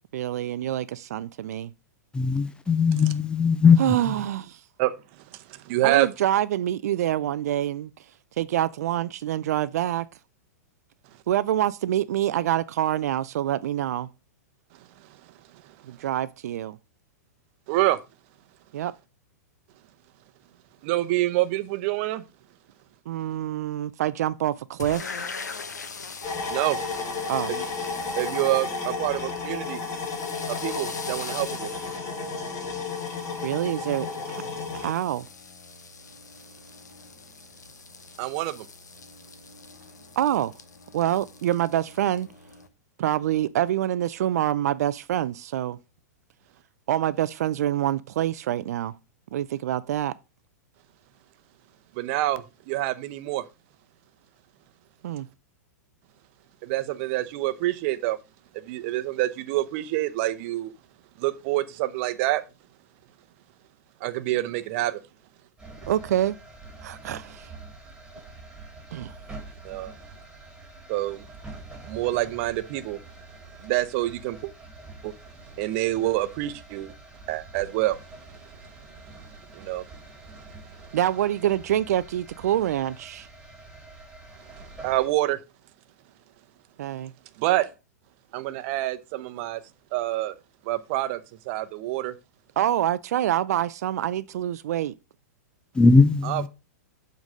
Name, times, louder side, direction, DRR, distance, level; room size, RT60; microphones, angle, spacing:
voice 1, 0.1-1.7 3.8-4.6 5.8-7.9 8.4-10.1 11.3-14.1 15.9-16.8 18.7-18.9 23.1-25.3 27.3-27.5 33.4-34.4 34.7-35.3 40.2-40.5 40.9-42.3 43.0-45.8 46.9-48.9 49.3-50.1 55.0-55.3 65.9-66.4 66.8-67.5 68.9-69.1 80.9-83.3 86.8-87.1 92.6-94.9, right 12 dB, 65° right, 0.4 m, -26 dB
voice 2, 2.1-4.0 95.7-96.5, left 4 dB, 10° left, 0.4 m, -19 dB
voice 3, 5.5-6.1 17.7-18.0 20.8-22.2 26.5-26.8 27.5-27.6 28.2-29.8 30.5-31.7 38.2-38.7 52.0-53.5 56.6-58.2 58.7-60.7 61.2-62.4 64.0-65.0 69.6-69.9 70.9-71.2 71.9-73.0 73.6-74.5 75.0-75.1 75.6-76.9 77.3-78.0 79.5-79.9 84.8-85.4 87.4-87.7 88.3-89.6 89.9-90.3 90.6-91.2 91.5-92.1 96.2-96.5, right 16 dB, 50° right, 0.8 m, -26 dB
sound 1, 24.8-42.7, left 5 dB, 90° left, 1.1 m, -42 dB
sound 2, 26.2-34.9, left 4 dB, 35° left, 2.8 m, -32 dB
sound 3, 65.6-85.1, right 2 dB, 5° right, 2.9 m, -46 dB
7.2 x 3.9 x 6.3 m
hypercardioid pair, 120°, 9 cm